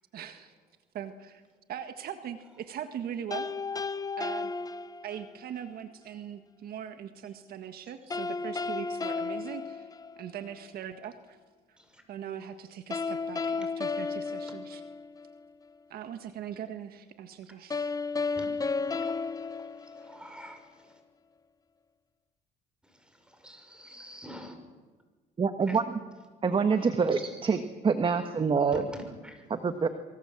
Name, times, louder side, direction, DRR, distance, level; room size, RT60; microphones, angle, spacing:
voice 1, 0.1-0.5 0.9-1.4 1.7-3.5 4.2-4.5 5.0-9.9 10.2-11.4 11.7-11.8 12.1-14.8 15.9-17.9, right 9 dB, 65° right, 9 dB, 1.6 m, -40 dB
sound 1, 3.3-5.5 8.1-10.5 12.9-15.4 17.7-20.5, left 4 dB, 20° left, 0.8 m, -33 dB
voice 2, 18.4-21.0 22.8-24.6 25.6-25.8 28.7-29.5, equal, 5° right, 6 dB, 6.1 m, -47 dB
voice 3, 25.4-25.8 26.4-28.8 29.6-29.9, right 5 dB, 30° right, 8 dB, 1.5 m, -26 dB
25.5 x 24.0 x 7.7 m, 1.4 s
cardioid pair, 110°, 17 cm